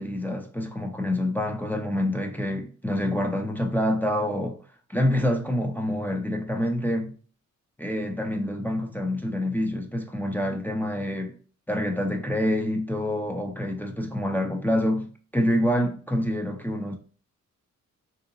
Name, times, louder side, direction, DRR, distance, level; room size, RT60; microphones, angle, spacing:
voice 1, 0.0-4.6 4.9-7.1 7.8-11.3 11.7-17.0, left 1 dB, 5° left, 0.4 m, -27 dB
3.7 x 2.7 x 2.5 m
cardioid pair, 100°, 31 cm